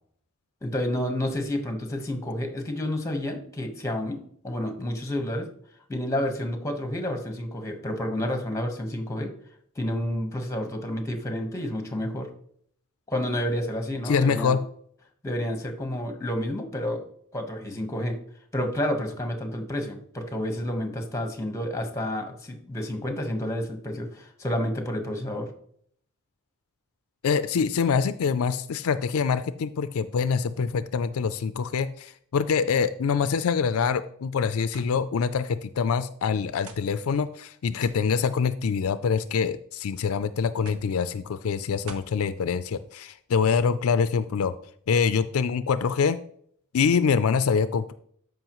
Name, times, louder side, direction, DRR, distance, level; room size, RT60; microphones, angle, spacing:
voice 1, 0.6-5.5 5.9-9.3 9.8-12.3 13.1-14.6 15.2-17.0 17.3-18.2 18.5-25.5, left 1 dB, 15° left, 5 dB, 1.2 m, -30 dB
voice 2, 14.1-14.6 27.2-44.5 44.9-46.2 46.7-47.9, left 6 dB, 75° left, 12 dB, 0.4 m, -25 dB
sound 1, 34.7-35.0 35.9-36.0 36.7-36.9 37.8-38.1 39.1-39.5 40.6-40.9 41.9-42.2, right 4 dB, 85° right, 1.0 m, -44 dB
13.5 x 5.4 x 3.0 m, 0.64 s
head